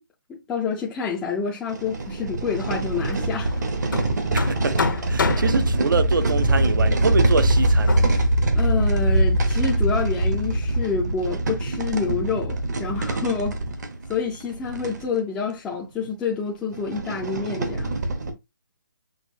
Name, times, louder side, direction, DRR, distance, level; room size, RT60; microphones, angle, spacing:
voice 1, 0.3-3.5 8.5-13.6 14.1-17.9, left 5 dB, 5° left, 0.4 m, -28 dB
sound 1, 1.1-1.2 1.7-15.0 15.7-15.8 16.1-16.2 16.7-18.3, right 1 dB, 60° right, 1.0 m, -23 dB
Hammer, 2.5-9.4, left 5 dB, 75° left, 0.8 m, -32 dB
voice 2, 4.3-4.8 5.1-7.9, right 4 dB, 75° right, 0.7 m, -25 dB
6.1 x 2.6 x 2.7 m
hypercardioid pair, 165°, 11 cm